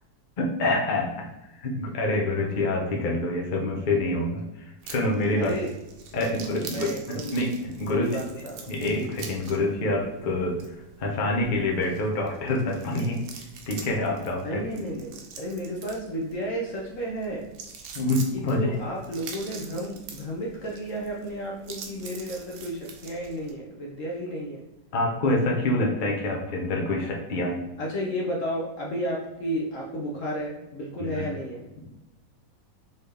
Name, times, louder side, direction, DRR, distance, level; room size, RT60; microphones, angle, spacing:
voice 1, 0.4-1.3 1.6-5.6 6.1-8.1 8.7-13.2 13.7-14.6 17.9-18.7 24.9-27.6 31.0-31.3, left 2 dB, 80° left, -1 dB, 0.4 m, -26 dB
sound 1, 4.8-23.5, right 5 dB, 70° right, 1.2 m, -45 dB
voice 2, 5.4-5.7 6.1-7.4 7.9-8.7 14.4-17.5 18.3-24.6 27.8-31.6, equal, 65° left, -2 dB, 0.8 m, -32 dB
4.1 x 3.7 x 3.3 m, 0.95 s
omnidirectional pair, 2.1 m